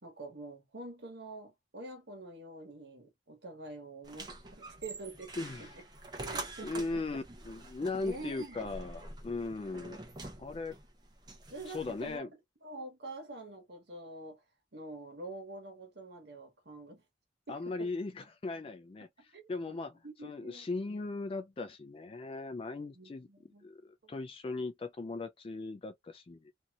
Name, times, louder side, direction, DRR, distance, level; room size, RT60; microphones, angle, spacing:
voice 1, 0.0-5.8 6.2-7.2 8.0-8.7 11.5-12.3 12.6-14.4 14.7-17.0 17.5-17.9 19.3-20.7 22.9-24.1, right 2 dB, 65° right, 1.2 m, -46 dB
sound 1, 4.0-12.2, right 2 dB, 20° right, 0.6 m, -46 dB
voice 2, 5.4-5.7 6.6-10.0 10.4-10.8 11.7-12.3 17.5-19.1 19.5-23.3 23.6-26.5, left 3 dB, 30° left, 0.3 m, -38 dB
2.6 x 2.3 x 2.8 m
head